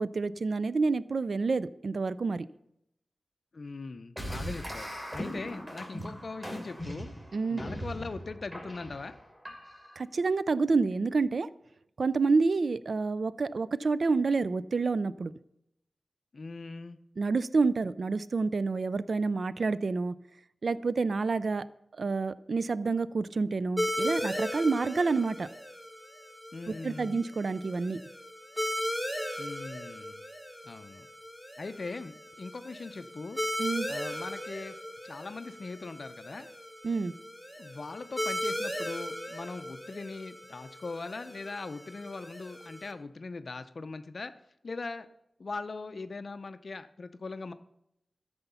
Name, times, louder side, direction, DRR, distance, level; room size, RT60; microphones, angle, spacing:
voice 1, 0.0-2.5 7.3-7.6 10.0-11.5 12.0-15.3 17.2-20.1 20.6-21.6 22.0-25.5 26.8-28.0 33.6-33.9 36.8-37.1, right 4 dB, 65° right, 17 dB, 0.4 m, -28 dB
voice 2, 3.5-7.1 7.5-9.2 16.3-17.0 26.5-27.2 29.4-30.2 30.6-31.1 31.6-33.4 33.9-34.7 35.0-36.5 37.6-44.3 44.6-45.1 45.4-47.5, left 3 dB, 60° left, 10 dB, 0.6 m, -40 dB
sound 1, 4.2-10.0, equal, 20° right, 3.0 m, -40 dB
sound 2, 23.8-42.9, equal, ahead, 1.3 m, -37 dB
13.0 x 6.9 x 5.6 m, 0.80 s
wide cardioid pair, 70°, 0 cm